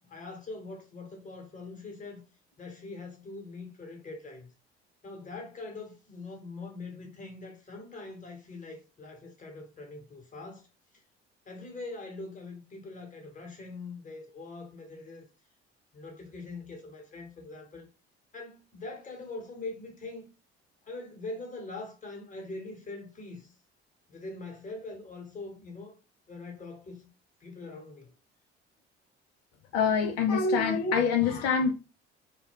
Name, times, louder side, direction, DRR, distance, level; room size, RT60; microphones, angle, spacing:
voice 1, 0.0-2.2 2.6-4.5 5.0-10.7 11.5-15.3 15.9-17.9 18.3-20.2 20.9-23.5 24.1-25.9 26.3-27.1 27.4-28.1, left 3 dB, 25° left, 1.2 m, -43 dB
voice 2, 29.7-31.7, left 5 dB, 50° left, 0.5 m, -25 dB
2.2 x 2.2 x 3.3 m
figure-of-eight pair, 55°, 33 cm